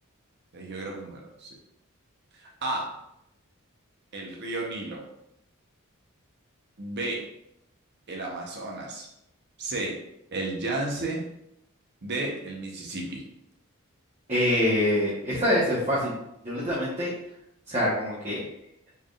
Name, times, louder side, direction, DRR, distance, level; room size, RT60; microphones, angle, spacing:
voice 1, 0.5-1.5 2.4-2.9 4.1-5.0 6.8-7.2 8.1-9.1 9.6-9.9 10.3-11.2 12.0-13.2, right 2 dB, 55° right, -1 dB, 0.9 m, -32 dB
voice 2, 14.3-16.1 16.4-17.1 17.7-18.4, left 1 dB, 30° right, -9 dB, 1.1 m, -25 dB
4.3 x 3.5 x 2.4 m, 0.80 s
head